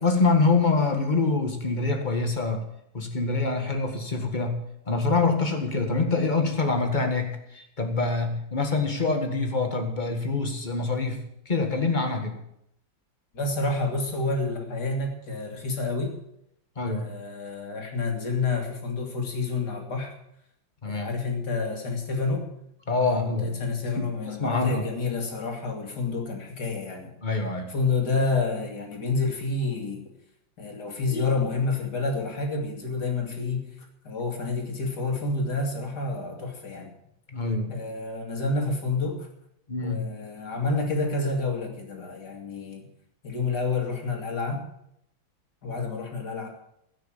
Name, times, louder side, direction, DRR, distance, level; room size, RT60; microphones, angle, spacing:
voice 1, 0.0-2.6 2.9-4.6 4.9-11.2 11.5-12.4 16.8-17.1 20.8-21.1 22.9-23.6 24.0-24.9 27.2-27.7 31.1-31.3 37.3-37.9 39.7-40.0, left 3 dB, 25° left, 5 dB, 1.8 m, -25 dB
voice 2, 13.3-16.1 16.8-20.1 20.8-22.5 23.0-27.1 27.7-30.1 30.6-33.7 34.0-36.9 37.7-39.3 39.8-42.9 43.2-44.6 45.6-46.5, left 3 dB, 60° left, 2 dB, 3.0 m, -29 dB
16.5 x 6.3 x 8.9 m, 0.77 s
omnidirectional pair, 2.1 m